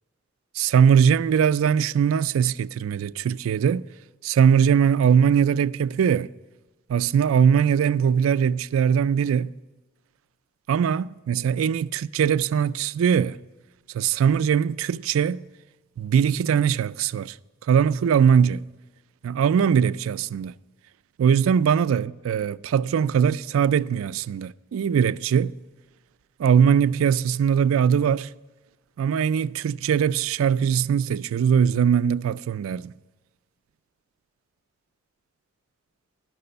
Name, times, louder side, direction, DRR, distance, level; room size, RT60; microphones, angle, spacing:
voice 1, 0.6-3.8 4.2-6.3 6.9-9.5 10.7-13.4 13.9-15.4 16.0-17.4 17.7-18.6 19.2-20.5 21.2-25.5 26.4-28.3 29.0-32.9, right 7 dB, 85° right, 0.3 m, -21 dB
12.5 x 6.0 x 6.7 m
head